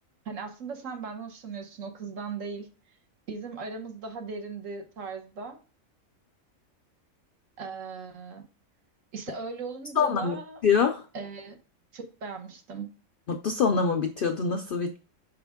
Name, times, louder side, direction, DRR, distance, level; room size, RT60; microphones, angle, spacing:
voice 1, 0.2-2.7 3.3-5.6 7.6-8.4 9.1-10.6 11.1-11.6 11.9-12.9, right 4 dB, 65° right, 6 dB, 1.3 m, -38 dB
voice 2, 10.0-10.4 10.6-11.0 13.3-15.0, left 6 dB, 65° left, 6 dB, 0.5 m, -25 dB
5.8 x 5.0 x 3.5 m, 0.37 s
omnidirectional pair, 1.5 m